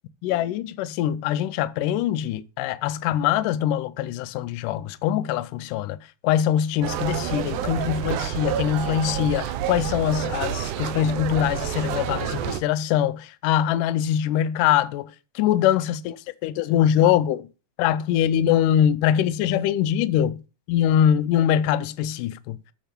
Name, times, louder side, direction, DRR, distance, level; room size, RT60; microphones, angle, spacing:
voice 1, 0.2-6.0 6.2-17.5 17.8-20.4 20.7-22.6, left 10 dB, 80° left, 2.2 m, -23 dB
sound 1, 6.8-12.6, right 10 dB, 75° right, 2.2 m, -29 dB
9.0 x 6.7 x 5.1 m
omnidirectional pair, 3.8 m